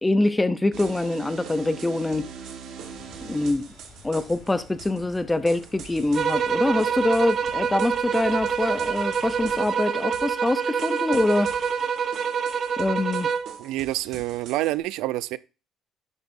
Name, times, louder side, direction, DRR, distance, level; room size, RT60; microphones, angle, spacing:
voice 1, 0.0-2.3 3.2-3.7 4.0-11.5 12.8-13.3, left 2 dB, 10° left, 0.5 m, -24 dB
sound 1, 0.7-14.8, right 7 dB, 55° right, 1.4 m, -43 dB
sound 2, 2.8-9.7, left 2 dB, 40° left, 4.3 m, -49 dB
sound 3, 6.1-13.6, right 7 dB, 35° right, 0.7 m, -26 dB
voice 2, 13.6-15.4, right 16 dB, 85° right, 0.4 m, -27 dB
10.0 x 8.2 x 2.6 m
cardioid pair, 160°, 0 cm